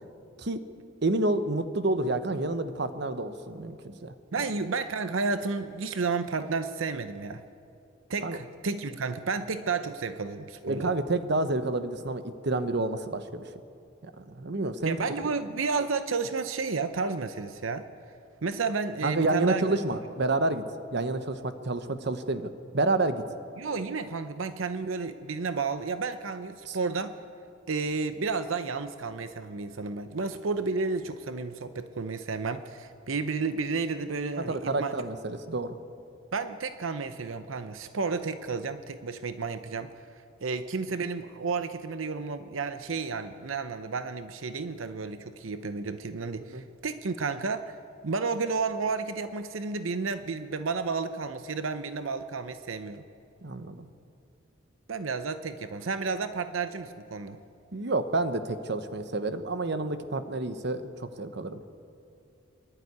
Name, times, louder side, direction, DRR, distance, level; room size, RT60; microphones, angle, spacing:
voice 1, 1.0-4.1 8.2-8.4 10.6-13.4 14.0-15.0 19.0-20.6 20.9-23.2 26.7-26.8 34.4-35.8 46.5-46.6 53.4-53.9 57.7-61.6, right 2 dB, 55° right, 10 dB, 1.0 m, -29 dB
voice 2, 4.3-7.4 8.1-10.9 14.8-17.9 18.4-19.6 23.6-27.1 27.7-35.0 36.3-39.9 40.4-47.8 48.0-53.0 54.9-57.4, right 4 dB, 85° right, 10 dB, 0.7 m, -32 dB
24.0 x 11.5 x 9.4 m, 2.6 s
head